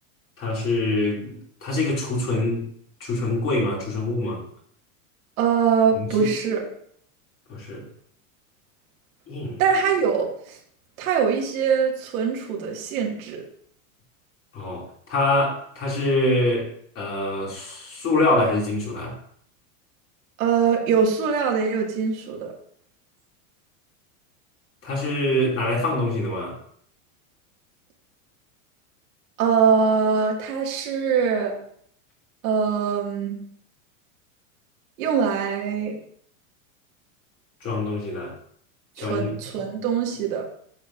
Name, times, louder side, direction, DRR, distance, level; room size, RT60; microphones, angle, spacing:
voice 1, 0.4-2.7 3.0-4.4 5.9-6.3 7.5-7.9 9.3-9.6 14.5-16.7 16.9-19.1 24.8-26.6 37.6-38.3 39.0-39.3, left 2 dB, 30° left, -2 dB, 2.7 m, -25 dB
voice 2, 5.4-6.6 9.6-10.3 11.0-13.4 20.4-22.5 29.4-31.5 32.4-33.4 35.0-36.0 39.0-40.4, right 6 dB, 80° right, -1 dB, 2.3 m, -22 dB
8.8 x 6.8 x 2.6 m, 0.63 s
supercardioid pair, 135°, 41 cm